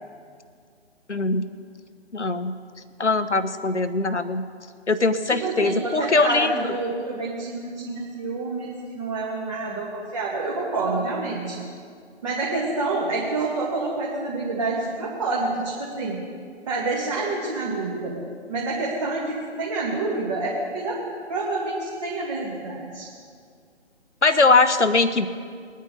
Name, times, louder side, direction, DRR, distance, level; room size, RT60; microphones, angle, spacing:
voice 1, 1.1-1.4 2.1-2.5 3.0-4.4 4.9-6.6 24.2-25.3, left 3 dB, 80° left, 11 dB, 1.0 m, -21 dB
voice 2, 5.3-11.6 12.2-16.2 16.7-18.2 18.5-21.0 21.3-23.1, right 3 dB, 25° right, -5 dB, 1.8 m, -28 dB
21.0 x 9.4 x 3.9 m, 2.2 s
figure-of-eight pair, 145°, 35 cm